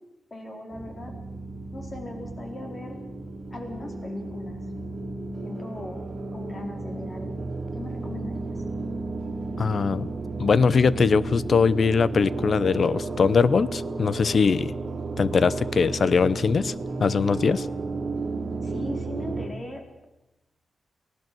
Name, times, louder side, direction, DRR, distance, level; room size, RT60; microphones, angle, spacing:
voice 1, 0.3-1.2 1.7-3.0 3.5-4.6 5.3-6.0 6.3-7.4 7.7-8.6 18.6-20.0, left 2 dB, 30° left, 3 dB, 4.5 m, -39 dB
sound 1, 0.7-19.5, right 3 dB, 40° right, 2.6 m, -33 dB
voice 2, 9.6-10.1 10.4-14.7 15.2-16.7 17.0-17.7, left 5 dB, 50° left, 18 dB, 0.7 m, -21 dB
23.5 x 17.0 x 7.8 m, 0.97 s
wide cardioid pair, 135°, 0 cm